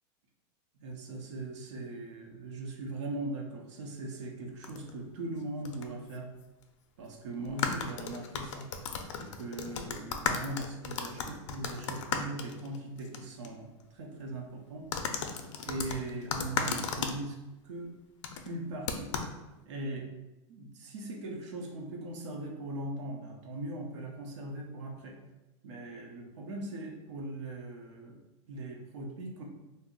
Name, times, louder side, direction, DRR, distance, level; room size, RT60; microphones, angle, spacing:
voice 1, 0.8-6.3 7.0-8.7 9.1-13.7 13.9-14.9 15.6-17.4 17.6-17.9 18.4-19.1 19.7-20.1 20.5-25.2 25.6-28.2 28.5-29.4, right 2 dB, 75° right, 0 dB, 0.7 m, -40 dB
sound 1, 4.6-4.9 5.6-5.8 6.1-6.2 7.4-13.2 13.4-13.5 14.9-17.2 18.2-18.5 18.9-19.3, left 6 dB, 85° left, 0.4 m, -35 dB
2.6 x 2.0 x 3.8 m, 1.0 s
supercardioid pair, 175°, 15 cm